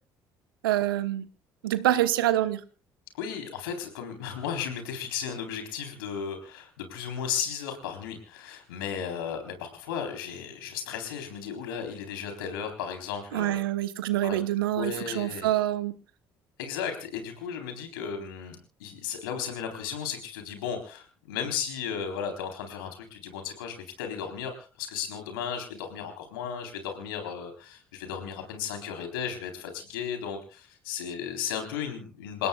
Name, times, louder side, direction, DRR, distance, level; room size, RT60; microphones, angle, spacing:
voice 1, 0.6-1.3 1.6-2.6 13.3-15.9, right 13 dB, 80° right, 12 dB, 1.1 m, -26 dB
voice 2, 3.1-13.6 14.2-14.4 14.7-15.5 16.6-32.5, left 7 dB, 75° left, 5 dB, 4.0 m, -35 dB
28.0 x 17.0 x 2.4 m, 0.35 s
figure-of-eight pair, 50°, 12 cm